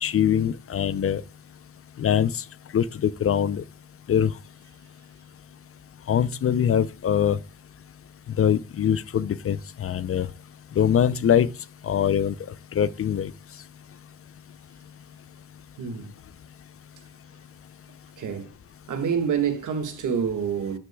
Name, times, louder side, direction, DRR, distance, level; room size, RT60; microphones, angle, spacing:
voice 1, 0.0-1.2 2.0-2.3 2.7-3.6 4.1-4.3 6.1-7.4 8.4-10.3 10.8-11.5 11.8-12.3 12.7-13.3, left 9 dB, 45° left, 0.6 m, -22 dB
voice 2, 15.8-16.1 18.2-18.5 18.9-20.8, right 7 dB, 75° right, 1.8 m, -27 dB
12.0 x 8.1 x 2.3 m
cardioid pair, 70°, 31 cm